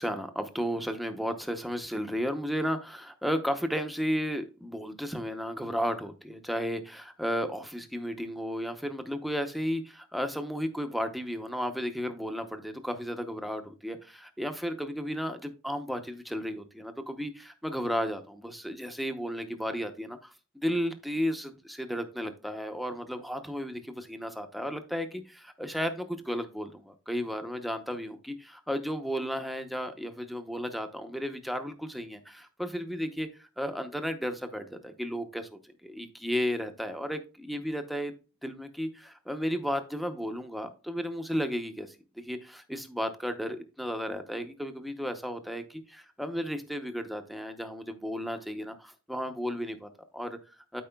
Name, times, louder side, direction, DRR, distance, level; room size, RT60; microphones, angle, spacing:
voice 1, 0.0-38.1 38.4-50.8, equal, ahead, 6 dB, 0.7 m, -34 dB
12.5 x 4.8 x 2.2 m, 0.33 s
head